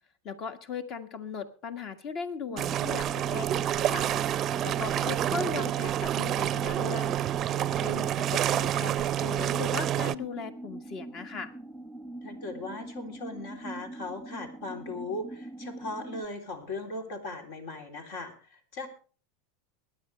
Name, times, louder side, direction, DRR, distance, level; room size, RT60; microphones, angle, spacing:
voice 1, 0.2-4.1 4.6-7.2 7.5-11.5, left 5 dB, 45° left, 9 dB, 1.6 m, -38 dB
sound 1, 2.5-16.2, right 2 dB, ahead, 1.0 m, -43 dB
sound 2, 2.6-10.1, right 11 dB, 35° right, 0.5 m, -28 dB
voice 2, 12.2-18.9, left 2 dB, 70° left, 4 dB, 3.3 m, -38 dB
23.0 x 9.7 x 3.3 m, 0.38 s
supercardioid pair, 125°, 0 cm